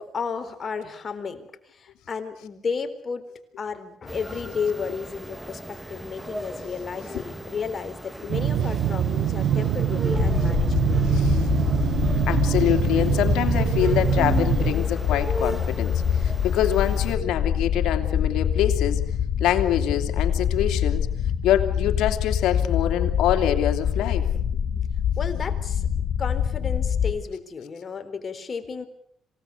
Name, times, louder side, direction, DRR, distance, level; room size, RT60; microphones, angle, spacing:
voice 1, 0.0-3.2 3.6-11.0 25.2-25.9 26.2-28.9, left 5 dB, 45° left, 8 dB, 3.8 m, -33 dB
sound 1, 4.1-17.2, equal, 5° right, 2.8 m, -37 dB
sound 2, 8.3-14.7, right 9 dB, 75° right, 1.8 m, -24 dB
sound 3, 10.1-27.1, left 8 dB, 65° left, 5.8 m, -25 dB
voice 2, 11.1-11.5 12.2-19.0 19.4-21.1 21.4-24.3, left 11 dB, 85° left, 6 dB, 2.8 m, -25 dB
27.0 x 18.0 x 8.3 m, 0.71 s
cardioid pair, 90°, 0 cm